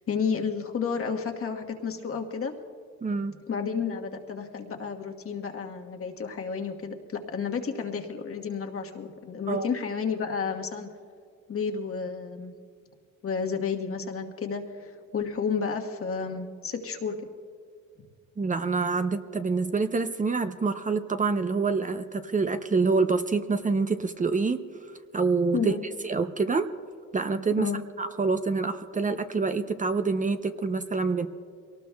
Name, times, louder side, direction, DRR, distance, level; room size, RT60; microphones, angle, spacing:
voice 1, 0.0-2.5 3.5-10.9 11.5-12.5 13.2-17.3 25.5-25.8 27.6-27.8, left 6 dB, 50° left, 3 dB, 1.4 m, -31 dB
voice 2, 3.0-3.3 9.5-9.7 18.4-24.6 25.1-25.7 26.0-26.7 27.1-27.7 28.0-31.3, right 4 dB, 25° right, 8 dB, 0.6 m, -26 dB
22.5 x 18.5 x 2.3 m, 2.1 s
cardioid pair, 90°, 30 cm